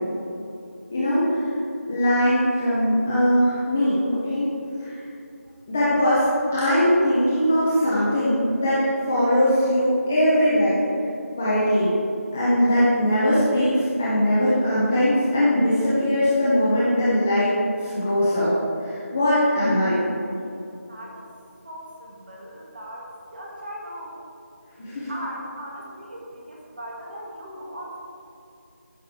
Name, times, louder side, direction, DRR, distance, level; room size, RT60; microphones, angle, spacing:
voice 1, 0.9-1.4 1.9-4.0 4.3-4.9 5.7-6.3 6.5-10.8 11.4-11.9 12.3-17.5 17.8-18.5 18.8-20.0 24.8-25.1, equal, 5° left, -10 dB, 0.6 m, -21 dB
voice 2, 20.9-21.3 21.6-24.2 25.1-28.0, equal, 40° right, -3 dB, 2.1 m, -38 dB
15.0 x 6.4 x 3.5 m, 2.6 s
figure-of-eight pair, 175°, 8 cm